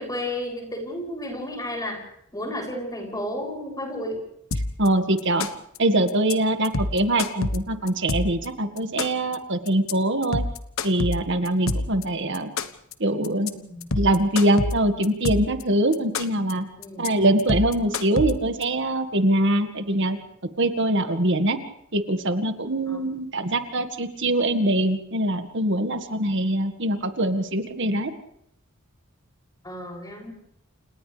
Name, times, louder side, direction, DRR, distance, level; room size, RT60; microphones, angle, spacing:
voice 1, 0.0-2.1 2.3-4.2 13.5-13.9 16.8-17.1 22.9-23.0 29.6-30.3, left 1 dB, 20° left, 0 dB, 7.4 m, -32 dB
sound 1, 4.5-4.9 5.2-5.8 6.1-6.3 6.6-8.5 8.8-9.3 9.7-9.9 10.2-12.0 12.3-12.9 13.2-13.5 13.8-15.6 15.9-16.5 16.8-17.1 17.4-18.6, left 2 dB, 75° left, 1.3 m, -27 dB
voice 2, 4.8-5.5 5.8-10.4 10.8-12.5 13.0-13.5 13.9-16.7 17.0-20.2 20.6-21.6 21.9-28.1, right 1 dB, 60° right, 7 dB, 1.9 m, -23 dB
29.5 x 28.5 x 3.4 m, 0.72 s
head